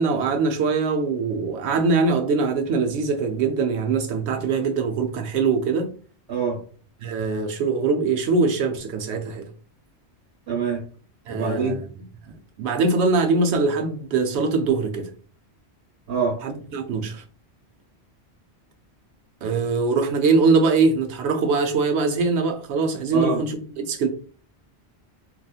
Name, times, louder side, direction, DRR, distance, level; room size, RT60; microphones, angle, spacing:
voice 1, 0.0-5.9 7.0-9.5 11.3-11.9 12.3-15.1 16.4-17.2 19.4-24.1, right 4 dB, 80° right, 0.9 m, -22 dB
voice 2, 6.3-6.6 10.5-10.8 11.3-11.8 16.1-16.4 23.1-23.4, right 5 dB, 65° right, 1.4 m, -25 dB
2.9 x 2.4 x 2.3 m
omnidirectional pair, 1.1 m